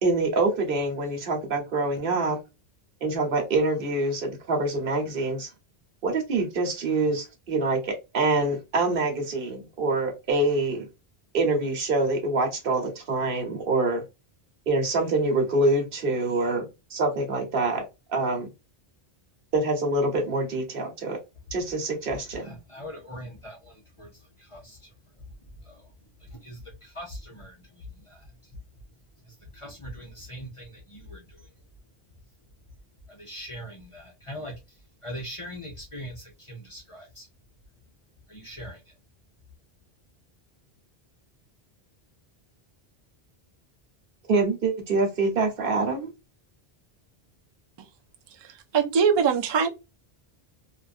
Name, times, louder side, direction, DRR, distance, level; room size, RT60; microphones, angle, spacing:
voice 1, 0.0-2.4 3.0-5.5 6.0-10.8 11.3-14.0 14.7-16.6 16.9-17.8 18.1-18.5 19.5-21.2 21.5-22.6 44.3-46.1, right 2 dB, 60° right, 1.1 m, -25 dB
voice 2, 22.4-24.9 25.6-25.9 26.2-28.5 29.2-31.5 33.1-34.5 35.0-37.3 38.3-38.9, equal, 35° left, 0.7 m, -42 dB
voice 3, 48.7-49.7, right 6 dB, 40° right, 0.4 m, -21 dB
2.5 x 2.5 x 2.5 m
omnidirectional pair, 1.1 m